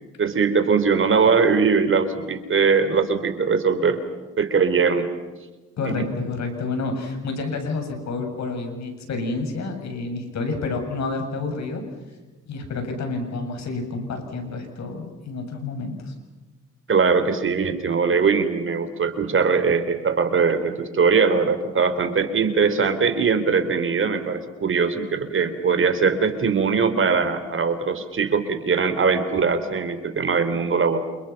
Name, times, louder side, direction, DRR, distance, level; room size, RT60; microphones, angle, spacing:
voice 1, 0.2-4.0 4.4-5.1 5.8-6.0 16.9-31.0, right 5 dB, 45° right, 10 dB, 3.6 m, -21 dB
voice 2, 5.8-11.8 12.5-16.1, left 3 dB, 65° left, 5 dB, 7.7 m, -29 dB
29.0 x 29.0 x 5.9 m, 1.2 s
cardioid pair, 90°, 30 cm